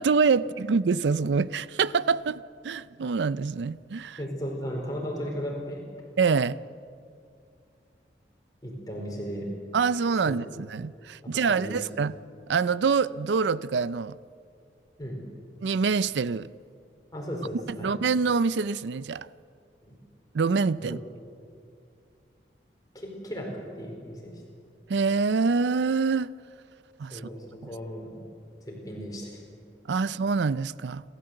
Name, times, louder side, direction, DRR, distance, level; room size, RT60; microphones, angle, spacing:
voice 1, 0.0-4.2 6.2-6.6 9.7-12.1 12.5-14.2 15.6-16.5 17.8-19.3 20.3-21.0 24.9-26.3 27.0-27.2 29.9-31.0, right 5 dB, 85° right, 0.5 m, -25 dB
voice 2, 4.2-5.8 8.6-9.5 10.2-10.3 11.5-11.8 15.0-15.2 17.1-18.0 19.8-20.0 20.8-21.0 22.9-24.3 27.1-28.2 28.6-29.4, equal, 20° left, 4.5 m, -36 dB
29.5 x 13.5 x 7.9 m
head